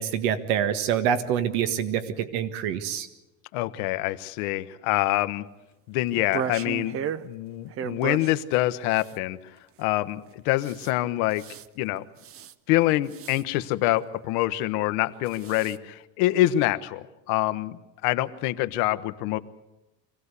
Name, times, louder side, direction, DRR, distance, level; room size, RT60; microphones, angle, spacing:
voice 1, 0.0-3.1, right 9 dB, 75° right, 10 dB, 1.8 m, -26 dB
voice 2, 3.5-5.5 5.9-9.4 9.8-11.4 11.8-12.0 12.7-19.4, left 16 dB, 75° left, 11 dB, 1.2 m, -26 dB
sound 1, 6.1-7.2 7.7-8.3 9.0-9.2 10.6-10.9 11.3-11.7 12.2-12.5 13.1-13.4 15.3-15.8, right 8 dB, 30° right, 0.7 m, -34 dB
25.0 x 17.0 x 8.3 m, 1.0 s
cardioid pair, 145°, 43 cm